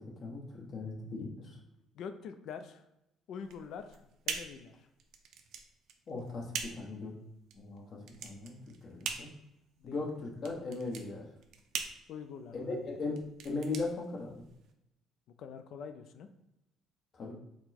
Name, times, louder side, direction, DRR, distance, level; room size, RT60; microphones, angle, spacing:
voice 1, 0.2-1.6 6.1-7.1 7.5-8.5 8.8-9.3 9.8-11.2 12.5-14.4 17.1-17.3, left 3 dB, 45° left, 0 dB, 1.0 m, -38 dB
voice 2, 1.9-2.8 3.3-4.9 9.8-10.0 12.1-12.9 15.4-16.3, left 6 dB, 65° left, 9 dB, 0.4 m, -45 dB
sound 1, 3.4-14.7, right 6 dB, 70° right, 0.5 m, -43 dB
4.3 x 2.1 x 4.2 m, 0.86 s
cardioid pair, 120°, 0 cm